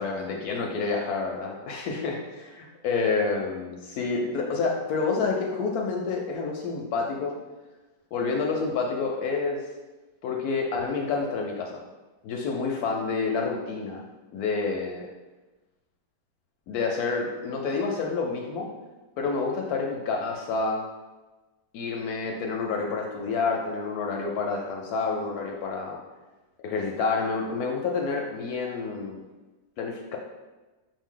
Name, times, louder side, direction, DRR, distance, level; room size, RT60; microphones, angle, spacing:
voice 1, 0.0-7.3 8.1-9.6 10.2-11.8 12.2-14.0 14.3-15.1 16.7-18.7 19.2-20.8 21.7-26.0 26.6-29.2 29.8-30.2, left 4 dB, 70° left, 0 dB, 0.9 m, -28 dB
5.4 x 2.7 x 3.7 m, 1.2 s
omnidirectional pair, 1.9 m